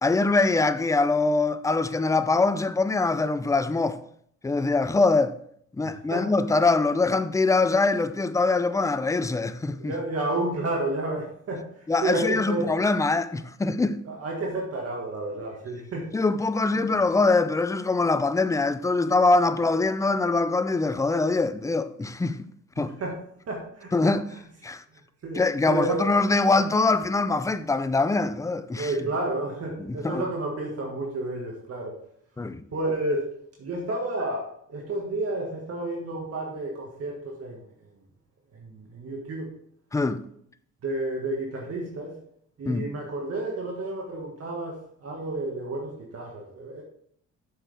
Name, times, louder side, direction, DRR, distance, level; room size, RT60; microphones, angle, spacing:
voice 1, 0.0-4.0 4.4-5.3 5.8-9.9 11.9-14.0 16.1-22.4 22.8-22.9 23.9-24.2 24.6-24.8 25.3-28.9 29.8-30.2 32.4-32.6 39.9-40.2 42.7-42.9, left 3 dB, 10° left, 0.4 m, -23 dB
voice 2, 5.8-6.3 9.8-12.7 14.0-16.1 16.7-16.9 22.8-23.2 23.5-24.2 25.2-26.1 28.7-32.0 32.7-33.3 33.6-37.6 38.5-39.5 40.8-42.2 42.6-46.8, right 2 dB, 55° right, 1.6 m, -31 dB
7.8 x 6.3 x 3.4 m
cardioid pair, 90°, 30 cm